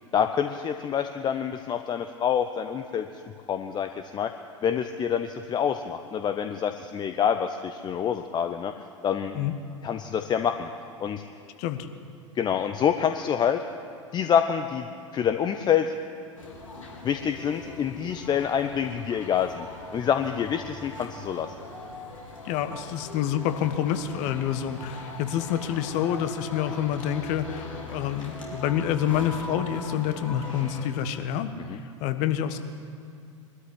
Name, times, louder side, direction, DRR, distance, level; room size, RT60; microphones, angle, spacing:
voice 1, 0.1-3.1 3.5-4.3 4.6-8.7 9.0-9.4 9.8-10.7 11.0-11.2 12.3-13.6 14.1-14.9 15.1-16.0 17.0-19.7 19.9-21.5, left 8 dB, 25° left, 7 dB, 0.9 m, -26 dB
sound 1, 16.4-30.9, left 2 dB, 85° left, 4.2 m, -41 dB
voice 2, 22.4-32.6, left 10 dB, 45° left, 9 dB, 1.5 m, -28 dB
22.5 x 13.0 x 10.0 m, 2.3 s
figure-of-eight pair, 85°, 16 cm